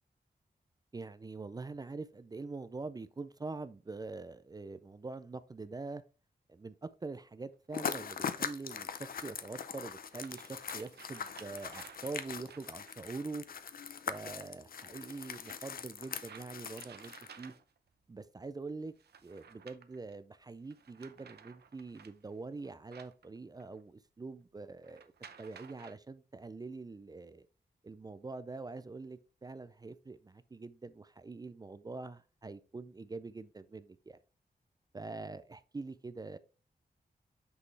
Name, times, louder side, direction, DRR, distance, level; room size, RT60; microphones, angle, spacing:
voice 1, 0.9-6.0 6.5-13.4 14.1-17.5 18.1-18.9 19.2-25.1 25.4-27.5 27.8-34.2 34.9-36.4, right 3 dB, 25° right, 0.3 m, -44 dB
folding paper, 7.5-7.6 9.2-9.3 9.9-13.1 15.0-17.9 19.0-20.1 20.7-23.8 24.8-25.9, right 7 dB, 85° right, 0.7 m, -56 dB
sound 1, 7.7-17.5, left 7 dB, 60° left, 0.5 m, -41 dB
6.1 x 5.4 x 3.2 m
wide cardioid pair, 150°, 16 cm